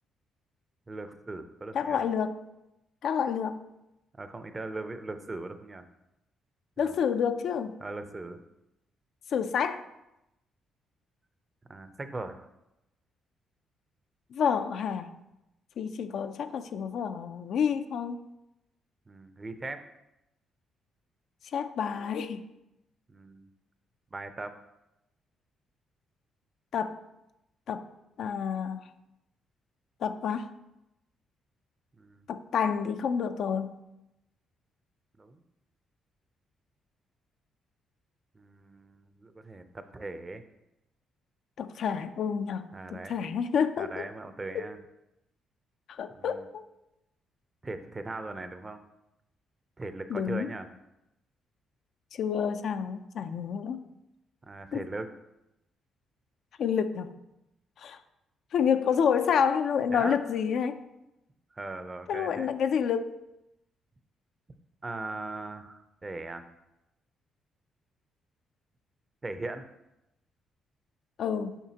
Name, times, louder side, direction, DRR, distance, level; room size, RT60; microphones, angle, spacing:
voice 1, 0.9-2.0 4.2-5.8 6.8-6.9 7.8-8.4 11.7-12.4 19.1-19.8 23.1-23.5 24.1-24.6 32.0-32.3 35.2-35.4 38.3-40.4 42.7-43.1 43.8-44.8 46.1-46.5 47.6-48.8 49.8-50.7 54.4-55.1 59.9-60.2 61.5-62.5 64.8-66.5 69.2-69.7, right 2 dB, 25° right, 9 dB, 0.5 m, -39 dB
voice 2, 1.7-2.4 3.0-3.6 6.8-7.8 9.3-9.8 14.3-15.1 15.8-18.2 21.5-22.5 26.7-27.0 27.7-27.9 28.2-28.9 30.0-30.5 32.3-33.7 41.6-44.0 44.5-44.6 45.9-46.6 50.1-50.5 52.1-53.8 54.7-54.9 56.6-57.1 57.8-58.0 58.5-60.8 62.1-63.2 71.2-71.6, left 7 dB, 70° left, 9 dB, 0.4 m, -29 dB
7.1 x 5.5 x 2.8 m, 0.90 s
cardioid pair, 90°, 0 cm